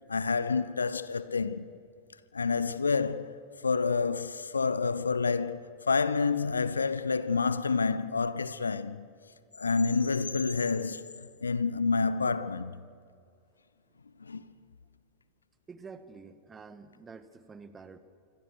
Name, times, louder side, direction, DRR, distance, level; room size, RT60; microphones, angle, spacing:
voice 1, 0.1-1.7 2.3-3.3 3.6-9.1 9.6-12.7 14.2-14.5, left 4 dB, 75° left, 0.9 m, -28 dB
voice 2, 15.7-18.0, right 5 dB, 20° right, 1.6 m, -48 dB
27.5 x 24.5 x 6.5 m
figure-of-eight pair, 90°, 0 cm